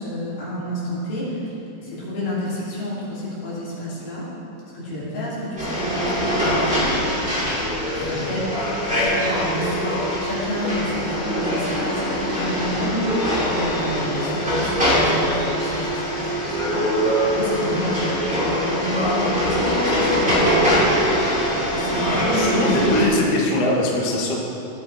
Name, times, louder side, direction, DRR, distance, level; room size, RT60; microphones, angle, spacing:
voice 1, 0.0-1.5 1.8-4.2 4.7-6.8 7.9-16.3 16.6-20.9 21.4-22.9, left 1 dB, 80° left, -8 dB, 4.7 m, -29 dB
sound 1, 5.6-23.0, equal, 5° right, 1.9 m, -22 dB
voice 2, 22.1-24.4, left 1 dB, 60° left, -2 dB, 1.8 m, -21 dB
16.0 x 8.3 x 3.3 m, 2.9 s
omnidirectional pair, 4.3 m